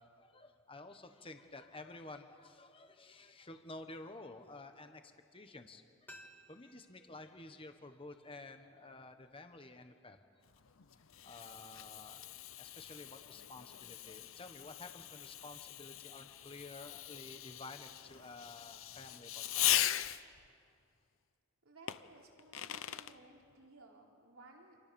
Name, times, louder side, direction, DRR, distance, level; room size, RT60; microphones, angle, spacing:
voice 1, 0.0-6.1 6.5-10.2 11.2-12.3 12.6-19.9, left 2 dB, 25° left, 7 dB, 1.4 m, -52 dB
sound 1, 6.1-8.9 9.2-9.3, equal, 10° left, 2.1 m, -60 dB
Fireworks, 10.5-20.5 21.9-23.1, left 13 dB, 65° left, 0.8 m, -39 dB
voice 2, 21.6-24.8, right 2 dB, 75° right, 0 dB, 3.8 m, -59 dB
30.0 x 28.0 x 7.1 m, 2.3 s
head